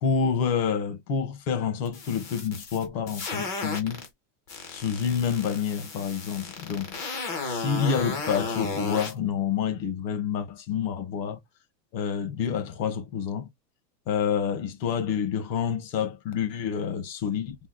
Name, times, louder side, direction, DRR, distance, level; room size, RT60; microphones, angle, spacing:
voice 1, 0.0-4.0 4.7-6.9 7.4-11.4 11.9-13.5 14.1-17.6, left 7 dB, 80° left, 1.5 m, -28 dB
sound 1, 1.8-4.1 4.5-9.1, left 3 dB, 20° left, 0.4 m, -34 dB
3.5 x 2.2 x 3.8 m
supercardioid pair, 160°, 49 cm